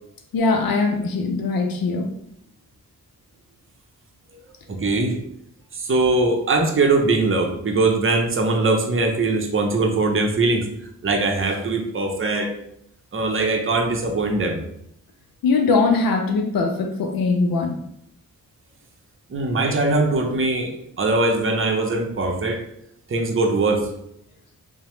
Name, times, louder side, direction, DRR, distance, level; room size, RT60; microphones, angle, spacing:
voice 1, 0.3-2.1 15.4-17.8, left 3 dB, 70° left, 4 dB, 0.5 m, -21 dB
voice 2, 4.7-5.2 5.7-10.7 11.0-12.5 13.1-14.6 19.3-22.6 23.1-23.9, right 3 dB, 35° right, 3 dB, 0.6 m, -21 dB
2.8 x 2.1 x 3.0 m, 0.74 s
cardioid pair, 55°, 36 cm